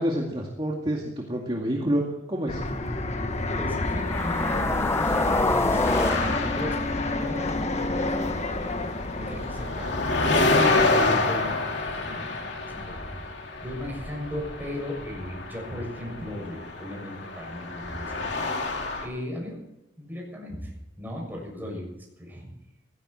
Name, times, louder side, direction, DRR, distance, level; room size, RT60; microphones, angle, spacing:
voice 1, 0.0-2.0 2.3-2.6 11.0-11.1, equal, 30° right, 0 dB, 2.1 m, -28 dB
Fixed-wing aircraft airplane, 2.5-11.2, left 2 dB, 40° left, 1.5 m, -30 dB
voice 2, 3.6-5.3 5.6-6.8 7.0-8.5 9.1-9.9 10.4-11.6 12.1-12.3 12.7-13.1 13.6-18.3 19.0-19.6 20.0-20.7 21.0-21.8 22.2-22.5, left 1 dB, 10° right, -1 dB, 6.9 m, -37 dB
sound 1, 3.9-8.3, left 2 dB, 15° left, 0.7 m, -28 dB
sound 2, 5.8-7.6 7.9-19.1, left 2 dB, 70° left, 2.8 m, -28 dB
18.0 x 16.5 x 4.4 m, 0.90 s
head